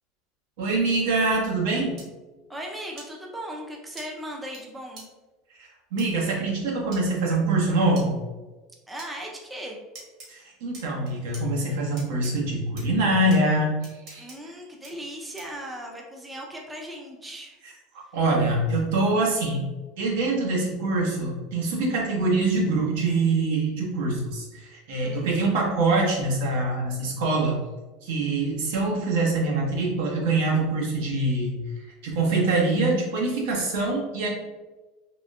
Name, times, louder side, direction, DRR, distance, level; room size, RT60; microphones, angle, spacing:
voice 1, 0.6-1.9 5.6-8.2 10.3-13.7 14.1-14.3 18.1-19.6 20.0-27.6 28.0-31.6 32.0-34.3, right 2 dB, 75° right, -2 dB, 0.9 m, -24 dB
sound 1, 2.0-2.1 3.0-3.1 4.0-4.1 4.5-4.6 5.0-5.1 6.0-6.1 6.9-7.0 8.0-8.1 9.0-9.1 9.9-10.3 10.7-11.4 12.0-12.3 12.8-12.9 13.3-13.4 13.8-14.4 14.8-14.9 15.4-15.6, right 2 dB, 50° right, 1.3 m, -43 dB
voice 2, 2.5-5.1 8.9-9.8 14.2-17.6 25.0-25.6, equal, 10° right, 0 dB, 0.4 m, -38 dB
3.5 x 2.6 x 2.3 m, 1.2 s
supercardioid pair, 130°, 0 cm